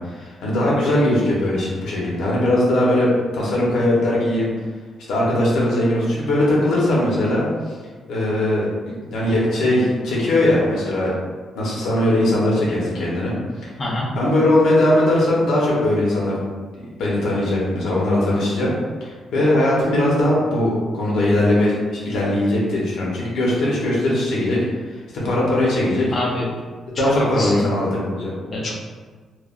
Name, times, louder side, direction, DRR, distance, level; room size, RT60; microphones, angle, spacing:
voice 1, 0.1-4.5 5.1-7.5 8.1-11.1 11.5-13.3 14.1-16.4 16.7-18.7 19.3-24.6 24.9-25.0 25.2-26.1 27.0-28.3, left 1 dB, 75° left, -5 dB, 0.8 m, -20 dB
voice 2, 13.8-14.1 26.1-26.5 27.1-27.7 28.5-28.7, left 1 dB, 35° left, -3 dB, 0.6 m, -25 dB
3.2 x 2.3 x 2.4 m, 1.4 s
cardioid pair, 180°, 0 cm